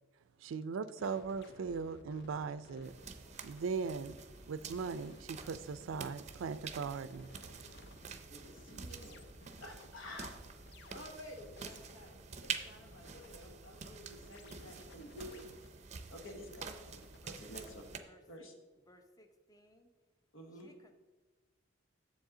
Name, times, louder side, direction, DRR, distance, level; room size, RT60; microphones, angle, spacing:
voice 1, 0.4-2.9 3.4-4.2 4.5-7.3, right 5 dB, 90° right, 0.4 m, -39 dB
sound 1, 1.0-18.0, left 2 dB, 60° left, 0.6 m, -59 dB
sound 2, 2.8-18.0, right 6 dB, 35° right, 0.5 m, -48 dB
voice 2, 8.3-9.3 9.6-15.7 16.1-17.8 18.3-18.5 20.3-20.7, left 1 dB, 80° left, 1.4 m, -51 dB
voice 3, 18.0-18.5 18.8-19.9 20.5-20.9, left 1 dB, 20° left, 0.7 m, -63 dB
7.4 x 7.4 x 3.8 m
head